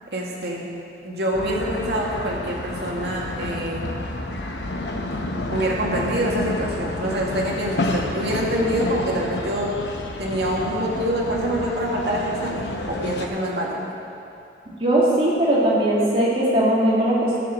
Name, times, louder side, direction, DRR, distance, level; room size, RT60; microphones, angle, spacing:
voice 1, 0.1-0.7 1.0-3.9 5.5-9.7 10.2-13.8, equal, 70° right, -3 dB, 2.2 m, -25 dB
sound 1, 1.3-13.3, left 1 dB, 80° left, 1.0 m, -30 dB
voice 2, 14.8-17.4, right 1 dB, 30° right, -6 dB, 2.4 m, -19 dB
12.0 x 7.5 x 7.3 m, 2.7 s
head